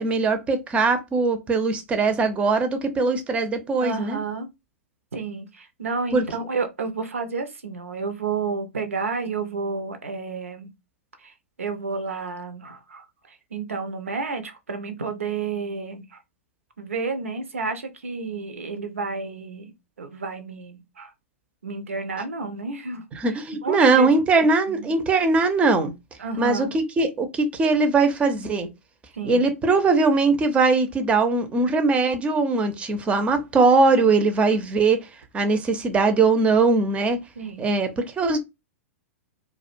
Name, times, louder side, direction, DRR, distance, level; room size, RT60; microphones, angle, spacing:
voice 1, 0.0-4.2 6.1-6.2 23.1-25.9 26.4-28.7 29.2-35.1 35.3-37.2 37.6-38.4, right 3 dB, 15° right, 0.5 m, -21 dB
voice 2, 3.8-4.5 5.1-10.7 11.2-11.3 11.6-13.0 13.3-16.2 16.8-21.1 21.6-23.0 23.6-24.1 24.7-24.9 26.2-26.7 29.1-29.4 33.9-34.6 37.4-37.7, right 4 dB, 75° right, 0.5 m, -31 dB
2.3 x 2.1 x 2.5 m
figure-of-eight pair, 105°, 7 cm